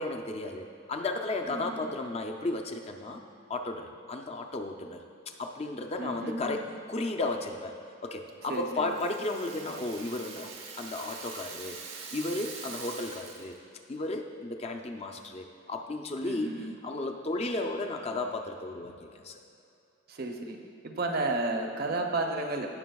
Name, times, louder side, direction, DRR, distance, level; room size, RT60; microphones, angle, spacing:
voice 1, 0.0-3.2 3.5-5.0 5.4-7.7 8.0-10.5 10.8-11.8 12.1-13.6 13.9-19.4, left 2 dB, 30° left, 4 dB, 0.5 m, -34 dB
voice 2, 1.5-1.9 6.0-6.7 8.5-9.0 16.2-16.7 20.1-20.6 20.8-22.7, right 2 dB, 50° right, 3 dB, 0.8 m, -32 dB
Rattle (instrument), 8.5-13.6, right 5 dB, 85° right, 1.1 m, -44 dB
16.5 x 6.0 x 2.3 m, 2.5 s
head